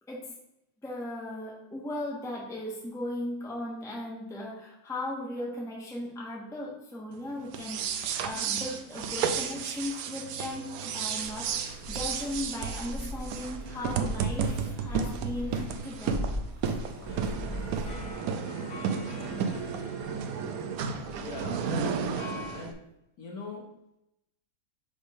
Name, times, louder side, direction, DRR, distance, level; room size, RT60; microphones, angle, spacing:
voice 1, 0.8-16.3, left 1 dB, ahead, -3 dB, 0.9 m, -37 dB
sound 1, 7.5-22.7, right 6 dB, 70° right, 0.9 m, -33 dB
sound 2, 11.2-18.1, left 1 dB, 35° right, 0.5 m, -39 dB
sound 3, 16.6-22.6, left 3 dB, 85° left, 1.7 m, -47 dB
voice 2, 21.2-21.7 22.5-22.8 23.2-23.7, left 3 dB, 55° left, -1 dB, 1.4 m, -40 dB
5.2 x 3.4 x 5.4 m, 0.85 s
omnidirectional pair, 2.0 m